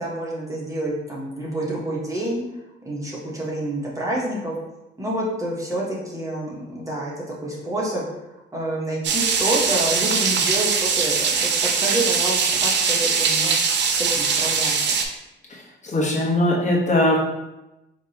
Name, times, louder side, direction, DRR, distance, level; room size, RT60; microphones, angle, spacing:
voice 1, 0.0-2.4 2.8-4.5 5.0-8.0 8.5-11.5 11.8-13.6 13.9-14.8, right 1 dB, 15° right, -5 dB, 1.3 m, -28 dB
sound 1, 9.0-15.0, right 5 dB, 60° right, 0.6 m, -21 dB
voice 2, 15.5-17.2, left 1 dB, 35° left, -3 dB, 1.1 m, -21 dB
4.7 x 3.0 x 2.9 m, 0.95 s
cardioid pair, 90°, 20 cm